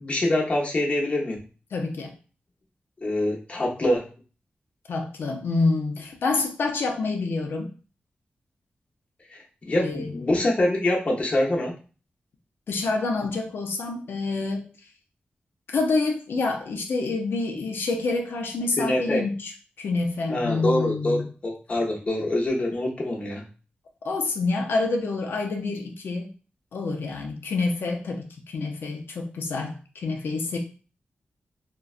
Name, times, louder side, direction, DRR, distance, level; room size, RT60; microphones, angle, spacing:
voice 1, 0.0-1.4 3.0-4.1 9.7-11.7 18.8-19.2 20.3-23.4, left 1 dB, 35° left, -2 dB, 0.7 m, -25 dB
voice 2, 1.7-2.1 4.9-7.7 9.7-10.2 12.7-14.7 15.7-19.5 19.8-21.3 24.0-26.3 26.7-30.6, left 3 dB, 85° left, 2 dB, 0.5 m, -27 dB
3.8 x 2.1 x 2.4 m, 0.36 s
wide cardioid pair, 135°, 4 cm